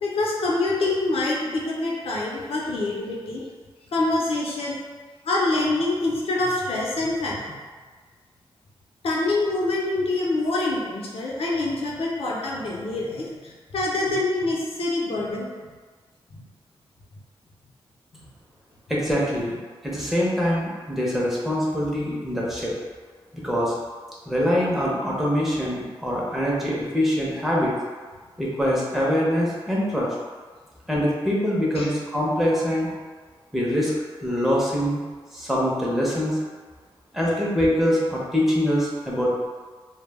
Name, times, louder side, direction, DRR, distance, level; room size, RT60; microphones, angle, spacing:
voice 1, 0.0-3.4 3.9-4.8 5.2-7.5 9.0-15.5 16.3-16.4 31.8-31.9, left 2 dB, 75° left, -4 dB, 0.5 m, -25 dB
voice 2, 18.9-19.6 19.8-22.7 23.3-23.7 24.3-27.7 28.4-30.1 30.9-32.9 33.5-33.9 34.2-35.0 35.3-36.4 37.1-39.5, equal, 5° right, -5 dB, 0.6 m, -24 dB
2.1 x 2.1 x 3.3 m, 1.5 s
wide cardioid pair, 95°, 10 cm